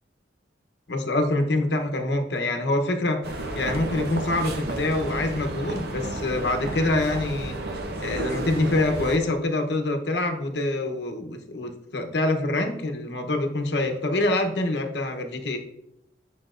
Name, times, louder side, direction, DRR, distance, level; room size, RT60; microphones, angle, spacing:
voice 1, 0.9-3.2 3.5-7.6 8.0-15.6, left 2 dB, 70° left, 4 dB, 0.9 m, -25 dB
sound 1, 3.2-9.2, right 1 dB, 60° right, 0.8 m, -32 dB
9.7 x 5.7 x 2.5 m, 0.85 s
head